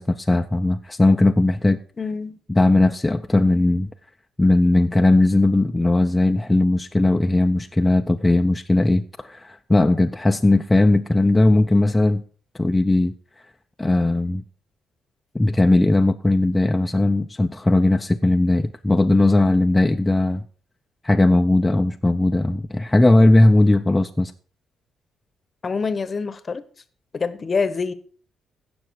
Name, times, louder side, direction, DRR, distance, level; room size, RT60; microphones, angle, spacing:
voice 1, 0.0-1.8 2.5-3.9 4.4-12.2 12.5-13.1 13.8-14.4 15.3-20.4 21.0-24.3, left 2 dB, 15° left, 0.6 m, -18 dB
voice 2, 2.0-2.4 25.6-26.6 27.1-27.9, left 4 dB, 35° left, 1.0 m, -25 dB
16.0 x 6.1 x 4.7 m
cardioid pair, 90°, 0 cm